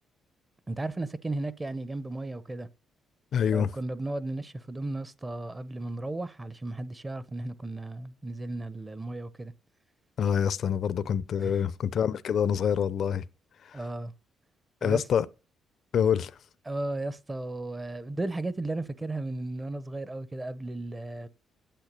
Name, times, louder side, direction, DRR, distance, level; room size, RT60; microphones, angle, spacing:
voice 1, 0.7-2.7 3.5-9.5 11.4-11.6 13.7-14.1 14.8-15.0 16.6-21.3, right 2 dB, 20° right, 0.9 m, -35 dB
voice 2, 3.3-3.7 10.2-13.2 14.8-15.3 15.9-16.3, left 8 dB, 60° left, 0.6 m, -26 dB
9.2 x 8.0 x 6.8 m
cardioid pair, 90°, 0 cm